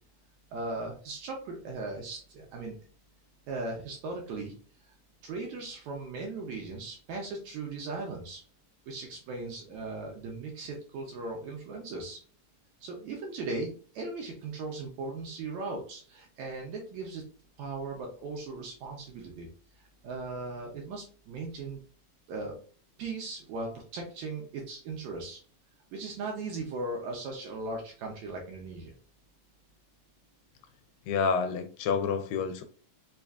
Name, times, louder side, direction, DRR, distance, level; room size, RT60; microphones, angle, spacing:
voice 1, 0.5-2.8 3.5-4.5 4.9-5.0 5.2-8.4 8.9-12.2 12.8-17.2 17.6-19.5 19.8-21.8 22.3-22.6 23.0-25.4 25.9-28.9, right 3 dB, 75° right, 1.8 m, -38 dB
voice 2, 31.1-32.6, left 5 dB, 85° left, 2.2 m, -28 dB
5.3 x 2.4 x 2.3 m
omnidirectional pair, 3.9 m